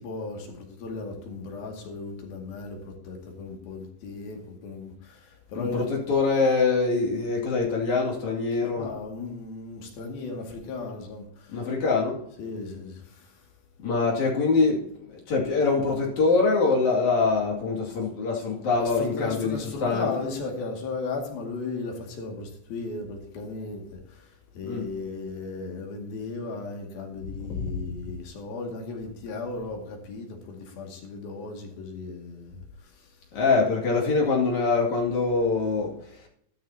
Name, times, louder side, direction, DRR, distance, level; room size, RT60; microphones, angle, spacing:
voice 1, 0.0-5.8 8.8-11.7 12.4-13.5 18.8-33.2, left 3 dB, 80° left, 4.1 m, -36 dB
voice 2, 5.5-8.9 11.5-12.2 13.8-14.8 15.1-20.1 24.7-24.8 33.3-35.9, left 4 dB, 55° left, 3.6 m, -24 dB
14.0 x 13.0 x 2.8 m
omnidirectional pair, 4.2 m